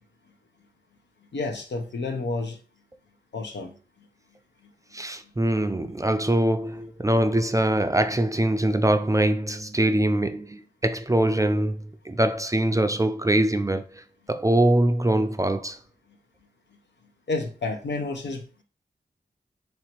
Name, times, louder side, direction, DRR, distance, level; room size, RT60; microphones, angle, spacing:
voice 1, 1.3-2.6 3.3-3.7 17.3-18.6, left 3 dB, 80° left, 0.8 m, -30 dB
voice 2, 4.9-15.8, right 1 dB, 20° right, 0.4 m, -23 dB
3.2 x 2.8 x 4.4 m
cardioid pair, 60°, 18 cm